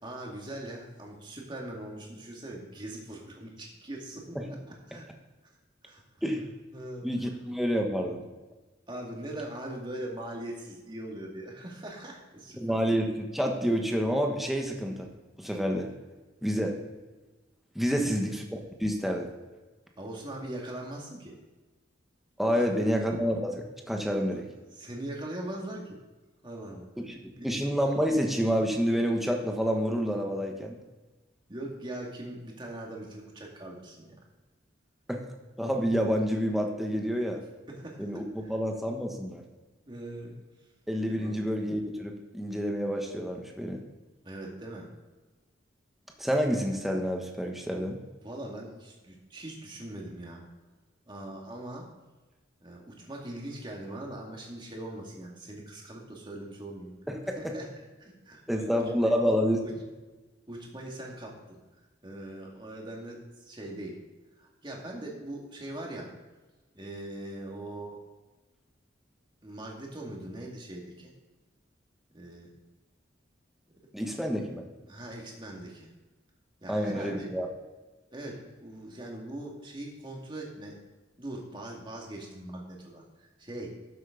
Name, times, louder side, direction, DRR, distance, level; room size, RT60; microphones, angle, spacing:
voice 1, 0.0-5.1 5.8-6.0 6.7-7.1 8.9-12.8 17.9-18.2 20.0-21.4 22.5-22.9 24.7-26.0 26.4-26.9 27.4-27.5 31.5-34.1 37.7-38.0 38.4-38.5 39.9-40.3 41.1-41.3 44.2-44.9 48.2-50.4 51.1-51.9 52.6-56.9 57.2-57.7 58.0-59.1 59.6-59.7 60.5-61.6 62.0-64.0 64.4-66.1 66.7-68.0 69.4-71.1 72.1-72.5 74.9-75.9 76.6-77.3 78.1-80.8 81.2-83.8, right 1 dB, 25° right, -1 dB, 2.2 m, -41 dB
voice 2, 7.0-8.2 12.6-15.1 15.4-15.9 16.4-16.8 17.7-19.3 22.4-24.5 27.0-27.2 27.4-30.7 35.1-35.2 35.6-37.4 38.0-39.4 40.9-43.8 46.2-48.0 57.1-57.5 58.5-59.6 73.9-74.6 76.7-77.5, equal, ahead, 1 dB, 1.2 m, -28 dB
12.5 x 7.6 x 3.8 m, 1.2 s
head